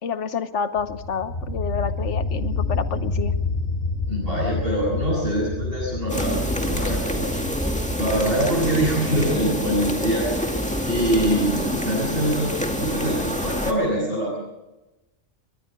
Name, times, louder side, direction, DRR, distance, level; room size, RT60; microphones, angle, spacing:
voice 1, 0.0-3.3, left 6 dB, 85° left, 11 dB, 1.4 m, -28 dB
sound 1, 0.8-12.3, left 3 dB, 65° left, 2.4 m, -30 dB
voice 2, 4.1-7.3 8.0-14.4, right 1 dB, 55° right, -8 dB, 8.2 m, -24 dB
sound 2, 6.1-13.7, equal, 5° left, 2.0 m, -26 dB
23.5 x 21.0 x 5.3 m, 1.0 s
omnidirectional pair, 1.2 m